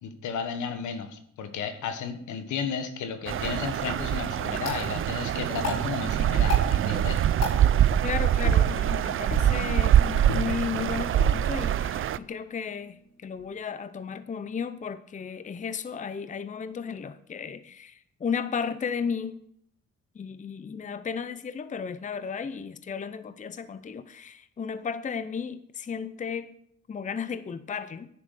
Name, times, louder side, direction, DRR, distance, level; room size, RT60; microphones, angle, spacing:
voice 1, 0.0-7.3, left 6 dB, 75° left, 8 dB, 1.4 m, -33 dB
sound 1, 3.3-12.2, right 10 dB, 45° right, 0.4 m, -24 dB
sound 2, 4.6-13.5, left 3 dB, 60° left, 4.4 m, -38 dB
voice 2, 8.0-19.4 20.1-26.6 26.9-28.1, left 6 dB, 25° left, 12 dB, 0.6 m, -34 dB
10.5 x 6.2 x 6.5 m, 0.68 s
cardioid pair, 90°, 30 cm